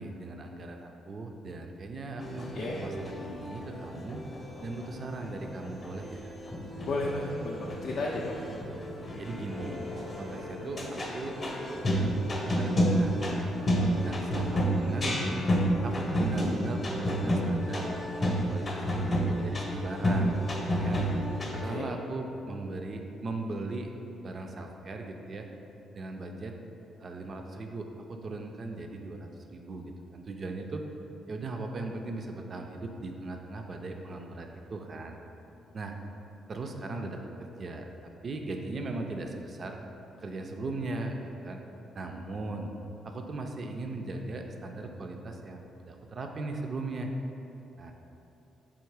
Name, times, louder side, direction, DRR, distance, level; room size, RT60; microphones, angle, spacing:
voice 1, 0.0-4.2 4.6-6.3 9.2-9.8 10.2-13.6 14.0-15.4 15.8-21.0 21.5-23.9 24.2-25.5 25.9-26.5 27.0-30.8 31.3-35.2 35.7-36.0 36.5-37.9 38.2-39.8 40.2-41.6 41.9-42.7 43.0-47.1 47.8-47.9, right 2 dB, 45° right, 3 dB, 0.4 m, -38 dB
sound 1, 2.2-21.6, equal, 35° left, 0.7 m, -31 dB
voice 2, 6.8-8.4 21.6-21.9, left 2 dB, 65° left, -3 dB, 0.3 m, -33 dB
sound 2, 8.0-16.5, right 1 dB, 80° right, 0.9 m, -46 dB
3.6 x 2.7 x 4.7 m, 2.9 s
cardioid pair, 90°, 0 cm